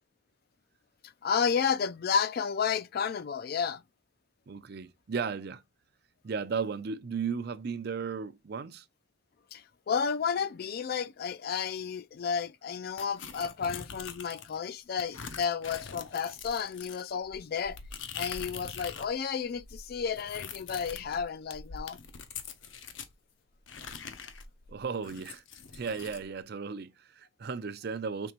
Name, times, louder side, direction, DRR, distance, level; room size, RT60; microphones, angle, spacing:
voice 1, 1.2-3.8 9.5-17.8 18.1-22.0, left 6 dB, 50° left, 0.3 m, -32 dB
voice 2, 4.5-5.6 6.2-8.9 24.7-25.4 25.7-28.3, right 5 dB, 55° right, 0.5 m, -35 dB
sound 1, 13.0-14.6 15.0-19.1 19.4-23.1 23.7-26.2, left 6 dB, 75° left, 0.7 m, -43 dB
5.3 x 3.3 x 3.0 m
head